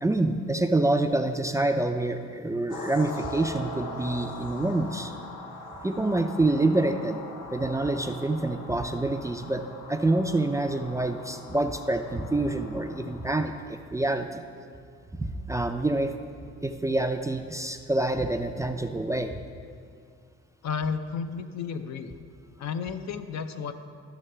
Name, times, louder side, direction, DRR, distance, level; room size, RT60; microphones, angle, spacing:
voice 1, 0.0-5.1 5.8-7.2 7.5-9.6 9.9-14.4 15.2-16.1 16.6-19.4, right 2 dB, 10° right, 6 dB, 0.4 m, -27 dB
sound 1, 2.7-13.4, left 2 dB, 80° left, 1.1 m, -41 dB
voice 2, 20.6-22.1 22.6-23.7, left 6 dB, 65° left, 8 dB, 0.6 m, -32 dB
12.0 x 6.5 x 3.3 m, 2.2 s
cardioid pair, 90°, 30 cm